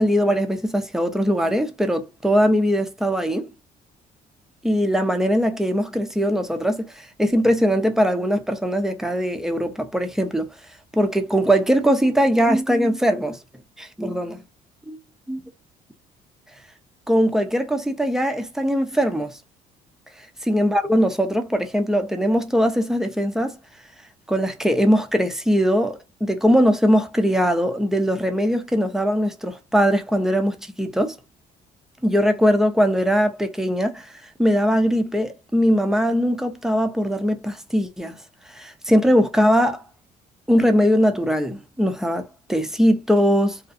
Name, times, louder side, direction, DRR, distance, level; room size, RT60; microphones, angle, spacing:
voice 1, 0.0-3.5 4.6-10.5 10.9-13.4 13.8-14.4 14.9-15.0 15.3-15.4 17.1-19.3 20.4-23.6 24.3-31.2 32.0-34.1 34.4-38.1 38.5-39.8 40.5-43.6, equal, 5° right, 0.4 m, -20 dB
2.5 x 2.4 x 2.4 m
cardioid pair, 110°, 17 cm